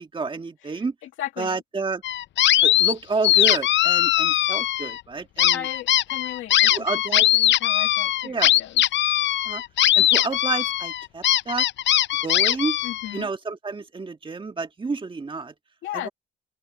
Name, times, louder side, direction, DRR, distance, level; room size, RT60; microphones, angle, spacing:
voice 1, 0.0-0.9 1.4-2.0 2.6-5.6 6.7-7.3 8.2-8.5 9.5-9.6 9.9-11.7 12.2-12.8 13.1-15.5, right 4 dB, 25° right, 1.7 m, -30 dB
voice 2, 0.6-1.6 5.5-6.7 7.1-8.8 12.8-13.3 15.8-16.1, left 12 dB, 85° left, 2.2 m, -36 dB
sound 1, 2.0-2.9 3.2-5.0 5.4-13.2, left 13 dB, 65° left, 0.6 m, -20 dB
open air
cardioid pair, 90°, 20 cm